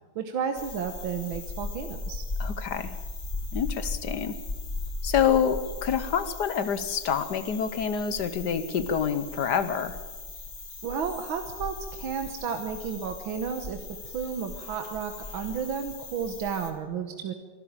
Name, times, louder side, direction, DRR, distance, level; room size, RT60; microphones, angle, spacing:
voice 1, 0.2-2.2 10.8-17.3, right 6 dB, 75° right, 6 dB, 2.0 m, -32 dB
sound 1, 0.5-16.7, left 3 dB, 30° left, 2.1 m, -38 dB
voice 2, 2.4-2.9 3.5-4.4 5.0-10.0, left 7 dB, 60° left, 12 dB, 1.5 m, -27 dB
24.0 x 12.0 x 8.8 m, 1.3 s
omnidirectional pair, 2.2 m